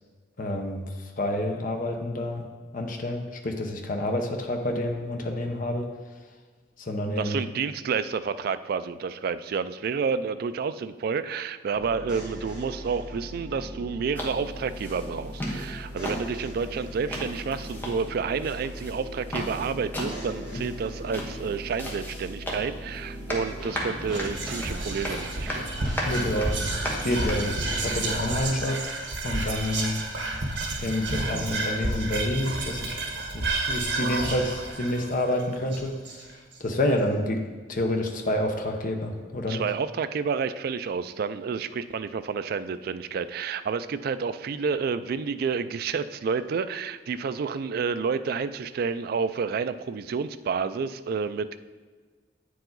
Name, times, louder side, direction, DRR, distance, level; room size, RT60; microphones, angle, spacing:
voice 1, 0.4-2.5 2.7-5.9 6.8-7.4 20.5-20.6 26.0-28.8 29.2-30.0 30.8-33.0 33.3-36.3 36.6-37.4 37.7-39.7, left 1 dB, 50° left, 3 dB, 0.7 m, -28 dB
voice 2, 7.2-25.7 36.8-37.0 39.5-51.6, right 5 dB, 55° right, 12 dB, 0.3 m, -30 dB
sound 1, 11.7-28.1, equal, 5° right, 1.8 m, -39 dB
sound 2, 14.2-27.6, left 1 dB, 10° left, 1.0 m, -37 dB
Whispering, 24.0-36.5, right 2 dB, 85° right, 1.3 m, -30 dB
8.7 x 4.7 x 3.9 m, 1.4 s
head